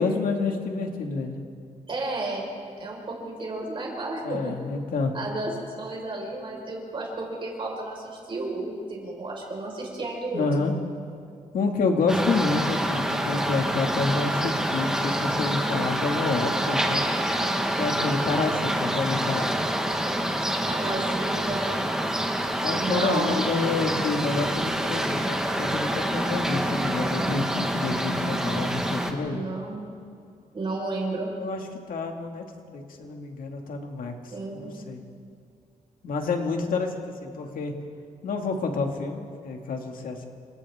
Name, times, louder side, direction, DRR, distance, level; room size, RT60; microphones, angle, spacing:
voice 1, 0.0-1.4 4.2-5.1 10.3-10.7 11.5-17.1 17.8-19.5 22.6-29.4 31.4-31.6 31.9-35.0 36.0-37.7 38.2-40.3, left 4 dB, 80° left, 2 dB, 2.2 m, -28 dB
voice 2, 1.9-2.5 2.8-4.5 5.1-5.5 5.8-10.7 20.7-21.6 22.7-23.4 29.2-29.8 30.5-31.3 34.3-34.7, right 2 dB, 35° right, -1 dB, 5.0 m, -32 dB
sound 1, 12.1-29.1, right 1 dB, 5° right, 1.6 m, -27 dB
29.5 x 25.5 x 3.7 m, 2.4 s
wide cardioid pair, 165°, 14 cm